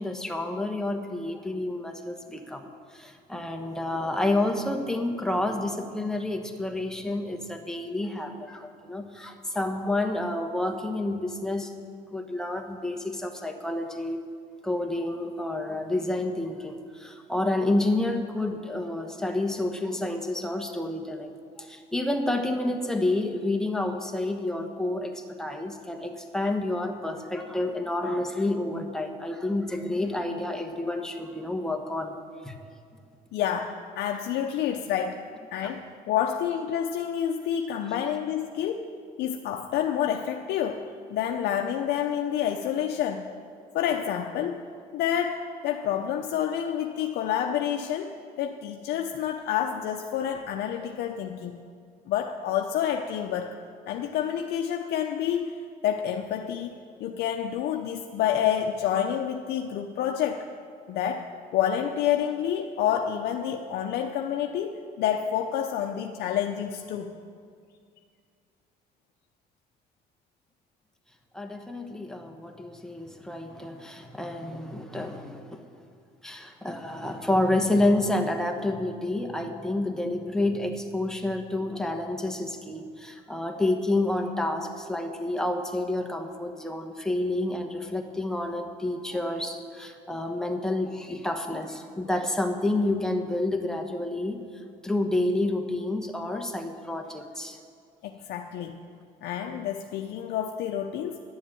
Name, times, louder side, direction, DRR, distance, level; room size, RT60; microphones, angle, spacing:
voice 1, 0.0-2.7 2.9-11.7 12.1-14.2 14.6-32.2 32.4-32.5 71.3-75.6 76.2-94.4 94.8-97.6, left 2 dB, 5° left, 3 dB, 1.1 m, -29 dB
voice 2, 33.3-35.2 35.5-38.8 39.2-43.3 43.7-44.6 44.9-48.1 48.4-51.7 52.1-53.6 53.9-55.6 55.8-60.5 60.9-67.1 98.0-98.7 99.2-101.2, left 9 dB, 75° left, 3 dB, 0.7 m, -28 dB
11.0 x 7.2 x 9.1 m, 2.2 s
cardioid pair, 110°, 17 cm